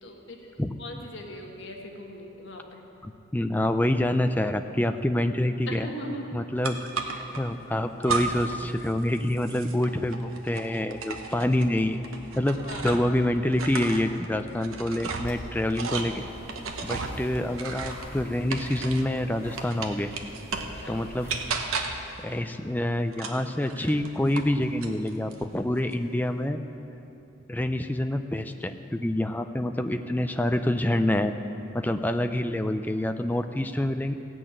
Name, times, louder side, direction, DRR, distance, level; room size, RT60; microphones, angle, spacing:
voice 1, 0.0-2.8 5.7-6.3 7.0-7.1 12.6-12.9 20.6-21.0, equal, 60° left, 1 dB, 1.4 m, -40 dB
voice 2, 3.0-5.9 6.3-12.1 12.3-16.2 16.8-20.1 20.9-21.3 22.2-26.6 27.5-31.3 31.7-34.1, left 1 dB, 10° left, 7 dB, 0.4 m, -27 dB
sound 1, 6.6-7.4 8.0-8.6 8.9-13.2 13.5-19.2 19.6-20.8 21.3-22.1 23.1-24.5 24.8-25.4, right 4 dB, 90° right, 1.0 m, -34 dB
sound 2, 15.2-21.8, equal, 15° right, 2.5 m, -46 dB
16.0 x 6.2 x 8.9 m, 2.9 s
head